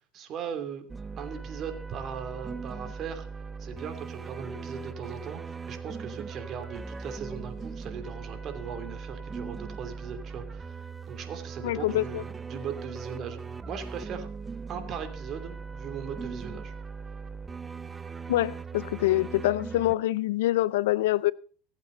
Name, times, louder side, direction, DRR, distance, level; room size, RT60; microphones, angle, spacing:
voice 1, 0.1-0.9 1.2-3.3 3.6-13.4 13.7-14.3 14.7-16.7, right 7 dB, 45° right, 2.9 m, -39 dB
sound 1, 0.9-20.0, right 5 dB, 20° right, 0.8 m, -39 dB
voice 2, 11.6-12.2 18.3-21.3, left 15 dB, 80° left, 0.5 m, -25 dB
24.5 x 8.3 x 3.9 m
supercardioid pair, 100°, 0 cm